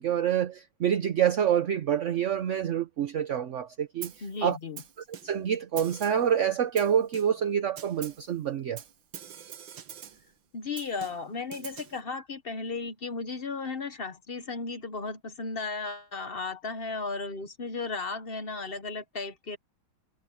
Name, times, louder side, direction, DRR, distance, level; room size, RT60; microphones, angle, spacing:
voice 1, 0.0-4.1 4.4-4.6 5.2-8.8, right 9 dB, 55° right, 0.8 m, -27 dB
Snare drum, 4.0-4.3 4.8-5.5 5.8-6.3 6.8-7.5 7.8-8.3 8.8-10.3 10.8-12.0, right 9 dB, 75° right, 2.0 m, -44 dB
voice 2, 4.2-4.8 10.5-19.6, left 4 dB, 45° left, 0.8 m, -35 dB
omnidirectional pair, 2.1 m